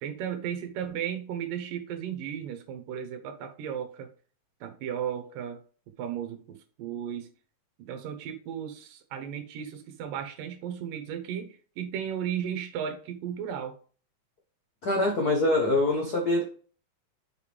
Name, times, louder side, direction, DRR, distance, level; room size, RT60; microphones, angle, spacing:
voice 1, 0.0-4.1 4.6-5.6 6.0-7.3 7.8-13.7, right 9 dB, 80° right, 6 dB, 2.7 m, -35 dB
voice 2, 14.8-16.4, left 2 dB, 65° left, 0 dB, 0.9 m, -24 dB
6.9 x 5.2 x 3.4 m, 0.41 s
omnidirectional pair, 3.9 m